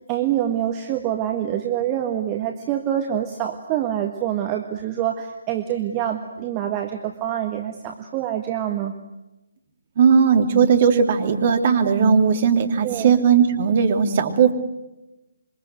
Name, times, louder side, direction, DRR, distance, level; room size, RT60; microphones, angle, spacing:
voice 1, 0.1-8.9 12.8-13.2, right 11 dB, 20° right, 4 dB, 1.7 m, -26 dB
voice 2, 10.0-14.5, right 6 dB, 35° right, 6 dB, 2.9 m, -17 dB
27.0 x 24.0 x 8.0 m, 1.0 s
figure-of-eight pair, 145°, 0 cm